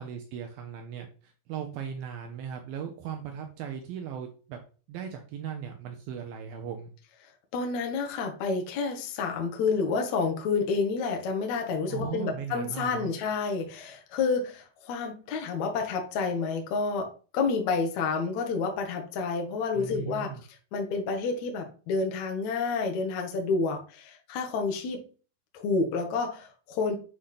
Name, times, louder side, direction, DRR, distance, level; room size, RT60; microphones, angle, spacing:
voice 1, 0.0-4.6 4.9-6.9 11.8-13.1 19.7-20.4, right 8 dB, 80° right, 4 dB, 2.1 m, -38 dB
voice 2, 7.5-20.3 20.7-25.1 25.5-27.0, left 4 dB, 70° left, 3 dB, 1.8 m, -29 dB
8.2 x 3.3 x 5.7 m, 0.38 s
omnidirectional pair, 5.3 m